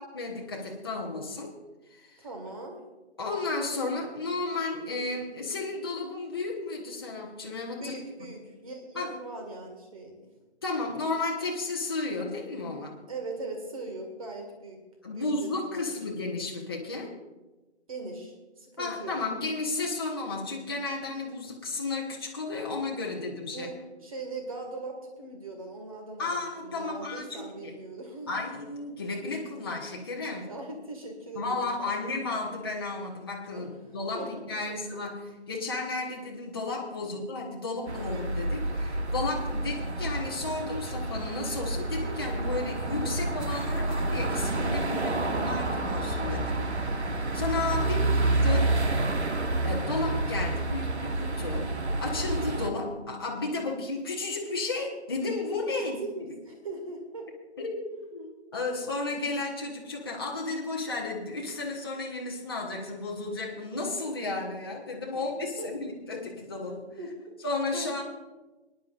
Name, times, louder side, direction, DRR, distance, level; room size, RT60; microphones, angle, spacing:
voice 1, 0.1-1.6 1.9-2.2 3.2-8.0 8.9-9.1 10.6-13.0 15.0-17.1 18.8-23.7 26.2-27.7 28.3-30.5 31.3-46.9 47.3-48.1 48.4-48.8 49.6-51.7 52.0-56.0 57.6-66.9 67.4-68.0, left 3 dB, 20° left, -2 dB, 1.0 m, -33 dB
voice 2, 2.2-2.8 7.8-10.2 13.1-14.8 15.1-15.9 17.9-19.2 23.5-28.4 30.3-32.0 33.5-33.7 34.1-34.6 37.0-37.1 47.8-48.2 56.0-57.3 65.2-65.3 65.6-65.7 67.0-67.1 67.7-67.9, right 2 dB, 30° right, 2 dB, 1.9 m, -40 dB
sound 1, 37.9-52.7, right 2 dB, 70° right, 1.3 m, -29 dB
22.5 x 10.0 x 2.5 m, 1.1 s
figure-of-eight pair, 165°, 34 cm